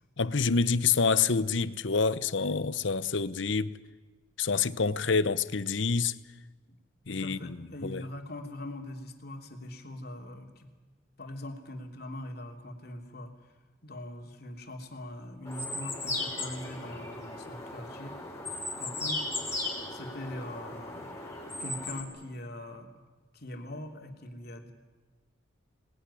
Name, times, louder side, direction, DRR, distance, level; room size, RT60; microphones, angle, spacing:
voice 1, 0.2-3.8 4.4-6.2 7.1-8.0, left 5 dB, 65° left, 0.8 m, -27 dB
voice 2, 7.1-10.7 11.2-13.3 13.8-18.2 18.8-19.3 19.9-21.1 21.6-22.9 23.3-24.7, left 1 dB, 50° left, 3.0 m, -42 dB
sound 1, 15.5-22.0, left 2 dB, 15° left, 5.0 m, -37 dB
26.0 x 19.5 x 10.0 m
head